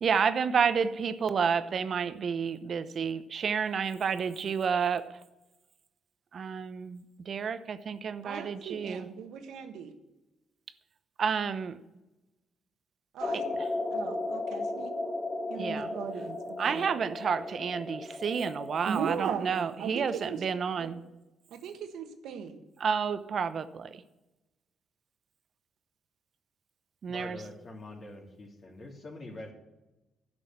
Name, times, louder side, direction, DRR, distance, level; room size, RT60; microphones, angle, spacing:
voice 1, 0.0-5.2 6.3-9.0 11.2-11.8 15.6-15.9 16.6-21.0 22.8-24.0 27.0-27.4, right 6 dB, 50° right, 0.8 m, -30 dB
voice 2, 8.2-9.9 13.1-13.5 13.9-14.9 15.5-16.8 18.8-20.4 20.8-20.9 21.5-22.6, right 7 dB, 80° right, 1.4 m, -38 dB
sound 1, 13.2-19.2, left 2 dB, 20° left, 3.1 m, -35 dB
voice 3, 27.1-29.5, left 2 dB, 45° left, 3.1 m, -44 dB
11.5 x 6.2 x 8.8 m
cardioid pair, 90°, 0 cm